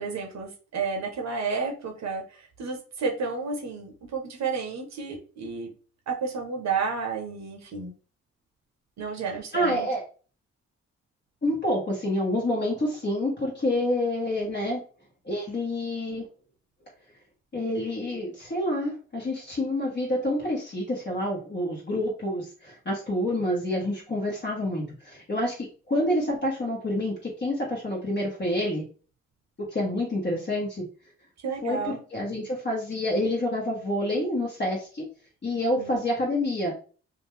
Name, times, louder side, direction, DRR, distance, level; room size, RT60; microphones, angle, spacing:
voice 1, 0.0-5.7 6.1-7.9 9.0-9.9 31.4-32.0 35.8-36.0, right 5 dB, 60° right, 2 dB, 0.8 m, -31 dB
voice 2, 9.5-10.0 11.4-14.8 15.2-16.2 17.5-28.8 29.7-30.8 31.6-35.0 35.4-36.7, left 1 dB, 35° left, -4 dB, 1.1 m, -28 dB
2.5 x 2.3 x 3.1 m, 0.38 s
supercardioid pair, 45°, 31 cm